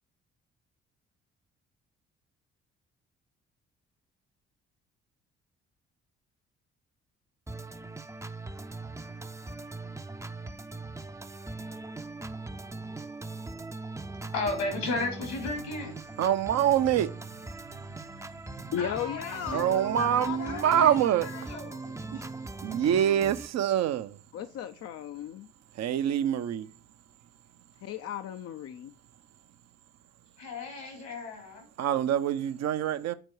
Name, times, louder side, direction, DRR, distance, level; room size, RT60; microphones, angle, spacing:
Organ, 7.5-23.5, right 3 dB, 10° right, 0.6 m, -40 dB
voice 1, 14.3-15.9 18.8-22.0 30.4-31.7, left 3 dB, 80° left, 3.3 m, -35 dB
voice 2, 16.2-17.1 17.7-18.7 19.5-21.3 22.6-24.2 25.8-26.7 31.8-33.1, right 10 dB, 55° right, 0.7 m, -26 dB
voice 3, 18.7-21.5 22.1-22.2 24.3-25.5 27.8-28.9, left 9 dB, 50° left, 0.6 m, -36 dB
8.9 x 4.5 x 4.6 m
hypercardioid pair, 45°, 31 cm